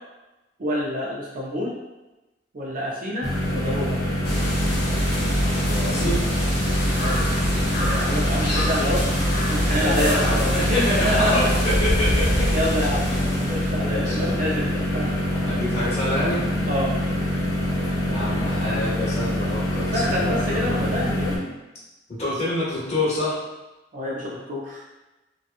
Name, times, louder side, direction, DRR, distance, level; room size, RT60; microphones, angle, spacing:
voice 1, 0.6-1.8 2.5-4.0 7.0-7.2 7.8-9.0 9.5-11.8 12.5-13.0 13.5-15.1 16.7-16.9 19.8-21.4 23.9-24.8, equal, 50° right, -5 dB, 0.4 m, -27 dB
sound 1, 3.2-21.4, left 1 dB, 20° left, 0.5 m, -25 dB
sound 2, 4.2-13.9, equal, 60° left, 1.1 m, -25 dB
voice 2, 5.6-6.2 9.8-12.5 13.0-13.2 13.8-14.4 15.5-16.4 18.0-21.0 22.1-23.4, left 1 dB, 40° left, -7 dB, 0.9 m, -27 dB
2.7 x 2.3 x 2.4 m, 1.1 s
head